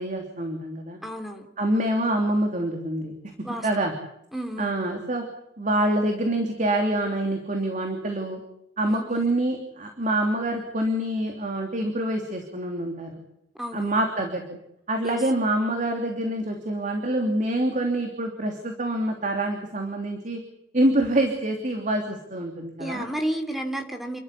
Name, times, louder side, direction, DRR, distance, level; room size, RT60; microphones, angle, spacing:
voice 1, 0.0-1.0 1.6-3.1 3.6-3.9 4.6-5.2 5.6-8.4 8.8-13.2 13.7-14.4 14.9-20.4 20.7-23.1, right 1 dB, 45° right, 3 dB, 3.1 m, -26 dB
voice 2, 1.0-1.5 3.4-3.9 4.3-4.7 8.8-9.1 13.6-14.0 15.0-15.2 22.8-24.2, right 1 dB, ahead, 5 dB, 2.9 m, -32 dB
29.0 x 13.0 x 9.7 m, 0.79 s
head